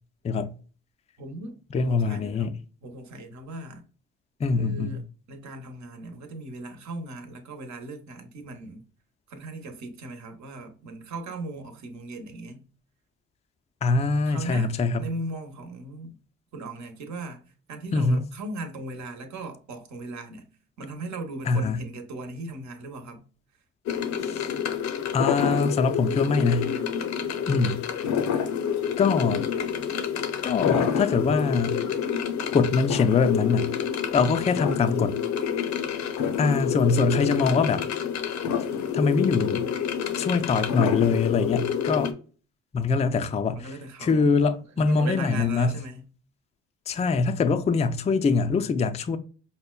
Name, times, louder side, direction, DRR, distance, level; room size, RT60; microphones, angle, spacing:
voice 1, 1.2-3.8 4.5-8.8 9.3-12.7 14.2-16.1 16.5-20.5 20.8-23.2 43.5-44.3 44.6-46.1, right 2 dB, 65° right, 0.9 m, -38 dB
voice 2, 1.7-2.5 4.4-5.0 13.8-15.0 17.9-18.2 21.5-21.8 24.2-24.5 25.1-26.8 27.5-27.8 29.0-29.5 30.4-31.8 32.5-33.7 34.1-35.2 36.4-37.8 38.9-39.7 40.2-42.1 42.7-43.7 44.0-45.7 46.9-49.2, left 4 dB, 25° left, 0.3 m, -23 dB
sound 1, 23.9-42.1, left 8 dB, 65° left, 0.6 m, -28 dB
5.3 x 2.2 x 2.3 m
cardioid pair, 90°, 30 cm